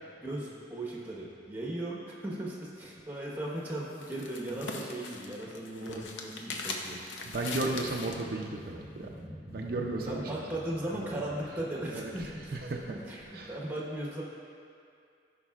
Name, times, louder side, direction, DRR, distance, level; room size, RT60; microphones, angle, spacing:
voice 1, 0.2-7.0 10.0-12.5 12.9-13.2 13.5-14.2, right 1 dB, 10° right, -4 dB, 1.1 m, -37 dB
sound 1, 3.5-8.3, left 3 dB, 85° left, 0.7 m, -41 dB
voice 2, 5.7-6.0 7.2-9.1 9.5-10.3 10.9-11.0 11.9-12.1 12.5-12.8 13.3-13.6, right 2 dB, 55° right, 0 dB, 0.5 m, -34 dB
sound 2, 7.2-13.7, equal, 20° left, 1.3 m, -48 dB
15.5 x 5.3 x 2.4 m, 2.4 s
head